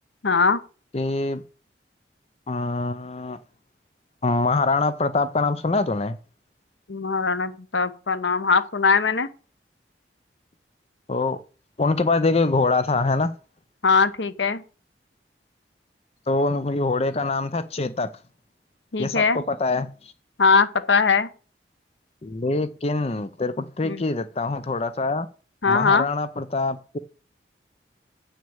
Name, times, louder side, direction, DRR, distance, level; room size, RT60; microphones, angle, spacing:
voice 1, 0.2-0.6 6.9-9.3 13.8-14.6 18.9-19.4 20.4-21.3 23.8-24.0 25.6-26.1, left 4 dB, 85° left, 1.0 m, -20 dB
voice 2, 0.9-1.4 2.5-3.4 4.2-6.2 11.1-11.4 11.8-13.3 16.3-18.1 19.0-20.1 22.2-25.3 25.7-27.0, left 3 dB, 35° left, 0.5 m, -24 dB
8.3 x 6.3 x 7.1 m
head